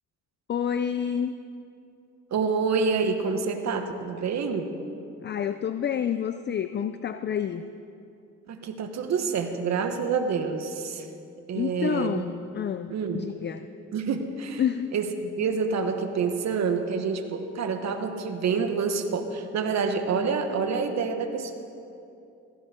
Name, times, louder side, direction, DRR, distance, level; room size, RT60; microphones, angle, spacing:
voice 1, 0.5-1.3 5.2-7.6 11.5-13.7 14.6-14.9, left 8 dB, 35° left, 11 dB, 0.5 m, -29 dB
voice 2, 2.3-4.7 8.5-11.1 11.5-12.3 12.9-13.3 13.9-14.6 14.9-21.5, right 5 dB, 60° right, 6 dB, 1.4 m, -27 dB
15.5 x 15.0 x 4.5 m, 2.7 s
cardioid pair, 90°, 30 cm